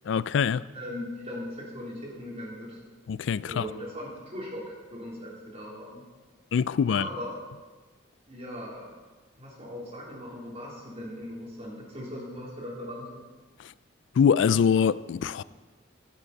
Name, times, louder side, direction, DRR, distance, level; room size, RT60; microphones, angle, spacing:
voice 1, 0.0-0.6 3.1-3.7 6.5-7.1 13.6-13.7 14.2-15.4, left 7 dB, 70° left, 0.3 m, -24 dB
voice 2, 0.7-2.8 3.4-6.0 6.9-7.4 8.3-8.9 9.4-13.2, equal, 35° right, 3.5 m, -39 dB
14.0 x 11.5 x 4.1 m
head